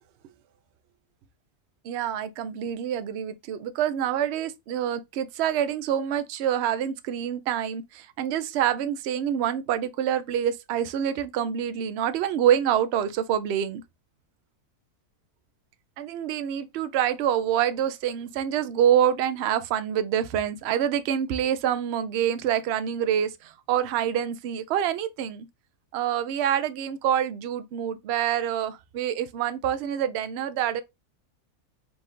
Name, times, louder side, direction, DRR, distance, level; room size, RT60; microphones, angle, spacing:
voice 1, 1.8-13.8 16.0-25.5 25.9-30.8, right 10 dB, 70° right, 0.6 m, -26 dB
4.9 x 2.5 x 3.7 m
omnidirectional pair, 1.6 m